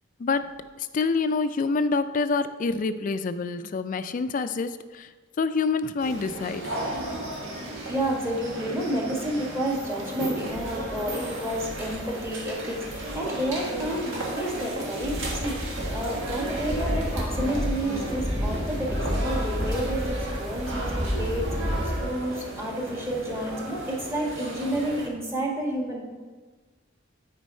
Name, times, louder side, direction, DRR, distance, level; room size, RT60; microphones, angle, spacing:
voice 1, 0.8-5.1 5.4-6.6, left 4 dB, 45° left, 11 dB, 0.3 m, -26 dB
sound 1, 6.0-25.1, right 1 dB, 85° right, 1.6 m, -34 dB
voice 2, 7.5-26.0, right 1 dB, 15° right, -2 dB, 1.4 m, -30 dB
sound 2, 10.5-22.0, equal, 35° right, 1.3 m, -32 dB
9.4 x 4.6 x 4.3 m, 1.3 s
head